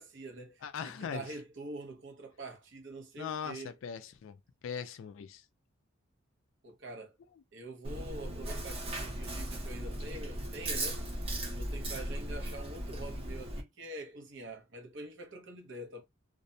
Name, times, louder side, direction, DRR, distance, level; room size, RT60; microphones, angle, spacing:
voice 1, 0.0-3.7 6.6-7.2 7.5-11.0 11.4-16.0, right 2 dB, 60° right, 0.8 m, -45 dB
voice 2, 0.6-1.2 3.2-4.4 4.6-5.4, left 7 dB, 75° left, 0.3 m, -40 dB
Chewing mastication, 7.8-13.6, right 1 dB, 30° right, 0.6 m, -37 dB
2.5 x 2.1 x 2.6 m
head